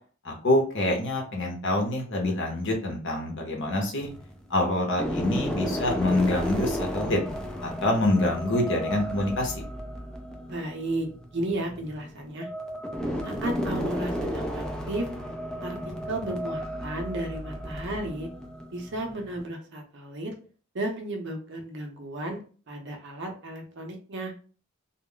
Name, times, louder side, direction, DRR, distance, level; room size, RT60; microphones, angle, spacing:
voice 1, 0.2-4.1 4.5-7.2 7.6-9.5, left 1 dB, 60° left, 1 dB, 0.8 m, -26 dB
sound 1, 3.5-4.4 4.9-19.4, equal, 5° left, 0.3 m, -33 dB
voice 2, 10.5-12.5 13.2-15.1 15.6-18.3 18.7-20.3 20.7-22.4 22.7-24.3, right 1 dB, 55° right, 2 dB, 0.6 m, -33 dB
2.3 x 2.0 x 3.7 m, 0.40 s
head